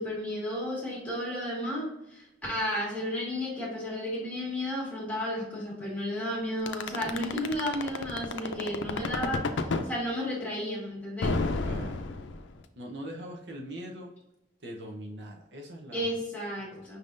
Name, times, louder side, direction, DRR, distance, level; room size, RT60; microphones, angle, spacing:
voice 1, 0.0-9.4 9.8-11.4 15.9-17.0, left 1 dB, 10° left, -6 dB, 1.7 m, -33 dB
sound 1, 6.7-9.9 11.2-12.6, left 3 dB, 85° left, 0.5 m, -30 dB
voice 2, 11.6-12.1 12.8-14.1 14.6-16.2 16.7-17.0, equal, 70° right, 1 dB, 0.8 m, -41 dB
5.7 x 3.6 x 2.6 m, 0.90 s
head